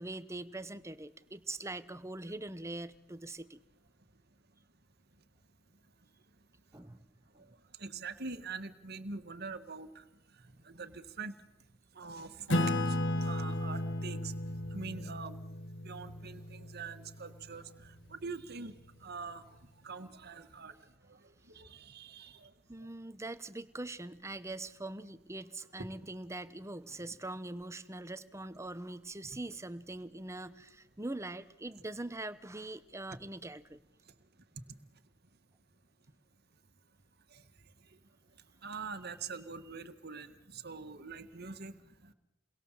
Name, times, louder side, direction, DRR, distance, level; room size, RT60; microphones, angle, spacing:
voice 1, 0.0-3.6 6.7-7.0 7.3-7.4 22.7-33.8, right 2 dB, 15° right, 14 dB, 1.0 m, -42 dB
voice 2, 7.3-11.4 11.9-14.3 14.7-15.4 15.8-22.9 25.8-25.9 34.1-34.2 34.5-34.6 37.3-38.0 38.6-42.1, right 4 dB, 50° right, 10 dB, 1.8 m, -45 dB
Acoustic guitar / Strum, 12.5-17.5, left 1 dB, 65° left, 2.1 m, -34 dB
30.0 x 22.0 x 7.6 m, 0.92 s
head